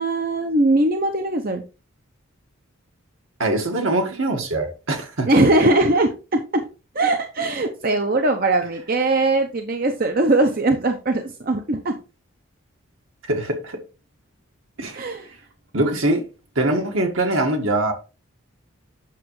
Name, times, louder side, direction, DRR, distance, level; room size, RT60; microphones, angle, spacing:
voice 1, 0.0-1.6 5.3-6.7 6.9-12.0 14.9-15.3, right 2 dB, 45° right, 0.8 m, -20 dB
voice 2, 3.4-5.3 13.3-13.8 14.8-15.1 15.7-16.3 16.6-17.9, right 2 dB, 70° right, 1.8 m, -22 dB
8.3 x 6.2 x 3.1 m
head